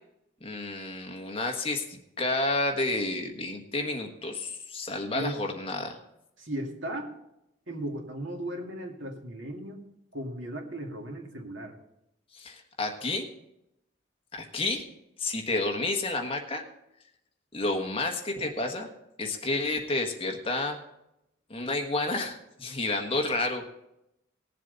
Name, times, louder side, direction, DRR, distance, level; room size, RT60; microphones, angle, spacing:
voice 1, 0.4-6.0 12.3-13.2 14.3-14.8 15.2-16.6 17.5-18.9 19.2-20.8 21.5-23.6, left 2 dB, 30° left, 3 dB, 1.3 m, -30 dB
voice 2, 6.4-7.1 7.7-9.8 10.1-11.8, right 1 dB, 90° right, 2 dB, 2.2 m, -36 dB
19.0 x 7.5 x 4.0 m, 0.84 s
head